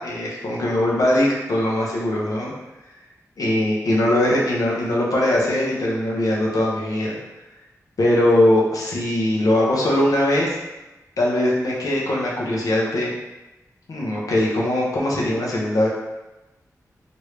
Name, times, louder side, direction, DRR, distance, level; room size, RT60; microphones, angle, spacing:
voice 1, 0.0-2.5 3.4-7.1 8.0-10.6 11.2-13.1 13.9-15.9, left 1 dB, 70° left, -4 dB, 0.7 m, -21 dB
3.2 x 2.6 x 3.1 m, 1.0 s
wide cardioid pair, 145°, 6 cm